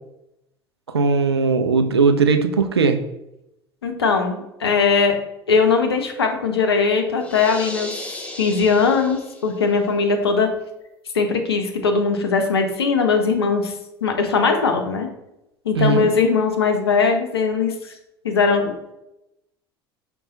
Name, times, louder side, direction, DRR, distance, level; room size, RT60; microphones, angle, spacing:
voice 1, 0.9-3.0 15.7-16.1, right 4 dB, 85° right, 7 dB, 0.4 m, -18 dB
voice 2, 3.8-5.1 5.5-7.9 8.4-10.5 11.1-13.7 14.0-15.1 15.6-17.9 18.2-18.7, left 5 dB, 80° left, 5 dB, 0.6 m, -20 dB
sound 1, 7.2-9.7, left 1 dB, 10° left, 0.7 m, -35 dB
5.3 x 2.3 x 3.7 m, 0.89 s
figure-of-eight pair, 70°, 13 cm